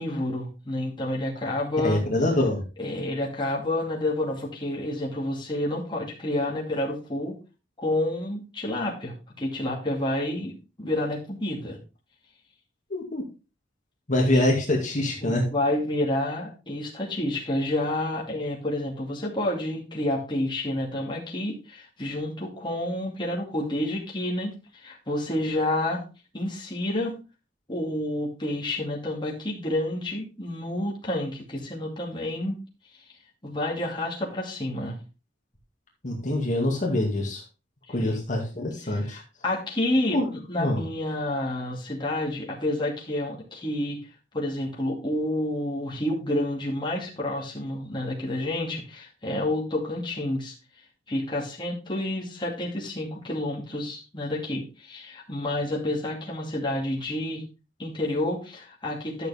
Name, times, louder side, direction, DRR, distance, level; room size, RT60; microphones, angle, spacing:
voice 1, 0.0-2.0 2.8-7.3 7.8-10.5 10.8-11.8 14.3-14.4 15.2-26.0 26.3-27.2 27.7-32.6 33.4-35.0 37.9-38.2 38.8-44.0 44.3-50.5 51.1-57.4 57.8-59.3, left 1 dB, 25° left, -3 dB, 2.3 m, -29 dB
voice 2, 1.8-2.6 12.9-13.2 14.1-15.5 36.0-37.4 37.9-39.2 40.1-40.3 40.6-40.8, left 1 dB, 40° left, 0 dB, 2.2 m, -25 dB
11.5 x 6.8 x 3.5 m, 0.31 s
head